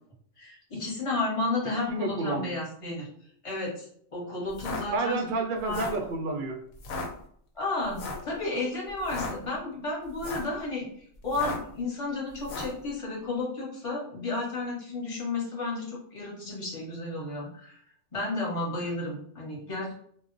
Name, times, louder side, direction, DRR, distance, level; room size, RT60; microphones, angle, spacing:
voice 1, 0.4-3.1 3.4-5.2 5.6-5.9 7.5-10.9 11.2-17.8 18.1-19.9, left 2 dB, 25° left, -4 dB, 0.9 m, -32 dB
voice 2, 1.9-2.6 4.9-6.6, right 3 dB, 70° right, 3 dB, 0.5 m, -30 dB
sound 1, 4.5-4.8 5.6-6.0 6.8-7.1 7.9-8.3 9.0-9.3 10.1-10.5 11.3-11.7 12.4-12.8, left 3 dB, 85° left, 1.1 m, -35 dB
2.3 x 2.1 x 3.8 m, 0.63 s
omnidirectional pair, 1.4 m